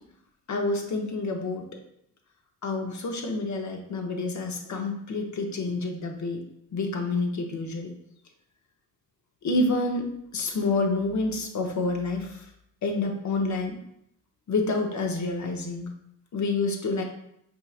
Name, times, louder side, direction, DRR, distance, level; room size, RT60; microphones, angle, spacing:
voice 1, 0.5-1.7 2.6-6.4 6.7-7.9 9.4-12.3 12.8-13.8 14.5-15.9 16.3-17.0, left 3 dB, 45° left, 3 dB, 0.8 m, -28 dB
4.2 x 2.7 x 2.4 m, 0.74 s
supercardioid pair, 60°, 41 cm